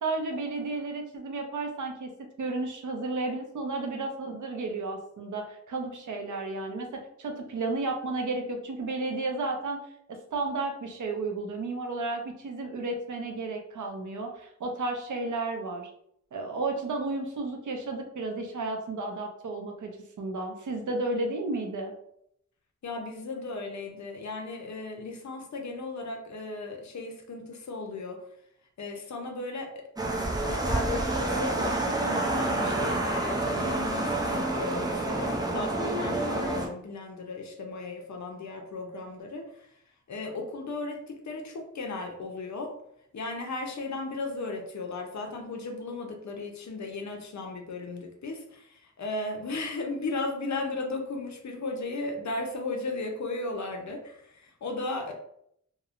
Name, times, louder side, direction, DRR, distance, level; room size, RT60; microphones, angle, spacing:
voice 1, 0.0-2.1 2.4-9.8 10.1-15.9 16.3-19.9 20.2-21.9, right 3 dB, 80° right, 3 dB, 0.5 m, -32 dB
voice 2, 22.8-28.2 28.8-29.8 30.4-39.7 40.1-42.7 43.1-55.1, left 3 dB, 70° left, 2 dB, 0.5 m, -36 dB
sound 1, 30.0-36.7, right 2 dB, 15° right, 0.4 m, -28 dB
2.8 x 2.0 x 2.4 m, 0.72 s
wide cardioid pair, 95°, 30 cm